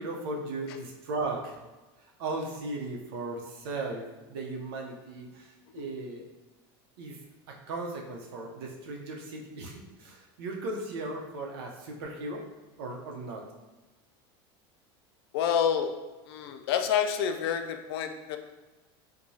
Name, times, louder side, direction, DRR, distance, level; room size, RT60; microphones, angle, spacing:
voice 1, 0.0-1.6 2.2-6.2 7.0-7.2 7.5-12.4 12.8-13.4, right 2 dB, 80° right, 1 dB, 0.7 m, -37 dB
voice 2, 15.3-15.9 16.3-18.4, left 8 dB, 85° left, 6 dB, 0.4 m, -28 dB
4.5 x 2.2 x 2.7 m, 1.2 s
supercardioid pair, 170°, 13 cm